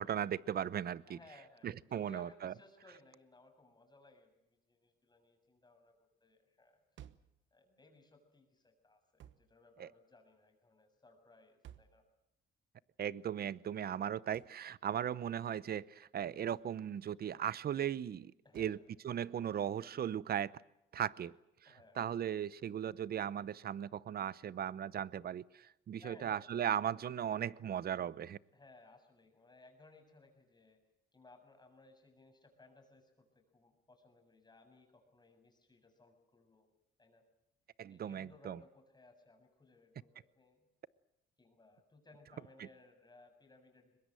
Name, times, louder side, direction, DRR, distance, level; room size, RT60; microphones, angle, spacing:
voice 1, 0.0-1.2 1.6-2.5 9.8-9.9 13.0-18.8 19.0-20.5 20.9-21.3 22.0-28.4 37.8-38.6, right 9 dB, 50° right, 20 dB, 0.8 m, -37 dB
voice 2, 1.1-6.8 7.5-12.0 15.2-15.5 18.4-18.8 21.7-22.0 26.0-26.5 28.5-30.8 31.1-36.7 37.0-37.2 37.9-40.7 41.4-44.1, left 2 dB, 20° left, 4 dB, 7.1 m, -62 dB
sound 1, 7.0-7.4 9.2-9.5 11.6-12.0 14.3-14.6 16.5-16.7 18.5-18.8, right 11 dB, 70° right, 1.2 m, -56 dB
23.0 x 21.5 x 7.8 m, 0.86 s
cardioid pair, 90°, 20 cm